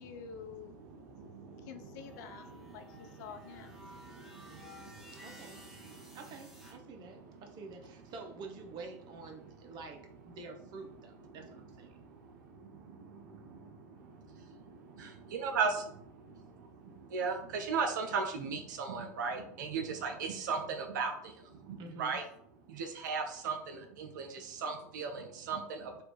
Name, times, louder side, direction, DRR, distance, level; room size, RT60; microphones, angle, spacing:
voice 1, 0.0-0.8 1.6-3.8, left 7 dB, 70° left, 8 dB, 0.6 m, -48 dB
voice 2, 0.8-2.2 2.7-2.8 3.1-3.2 3.8-6.2 6.9-7.3 11.4-11.5 11.9-22.2 22.7-26.0, right 5 dB, 80° right, 5 dB, 0.7 m, -38 dB
sound 1, 2.0-6.7, left 1 dB, 5° right, 1.2 m, -54 dB
voice 3, 5.2-5.6 6.1-10.0 10.3-12.0 21.8-22.2, right 4 dB, 50° right, 4 dB, 0.9 m, -48 dB
3.3 x 2.6 x 4.5 m, 0.68 s
hypercardioid pair, 90°, 10 cm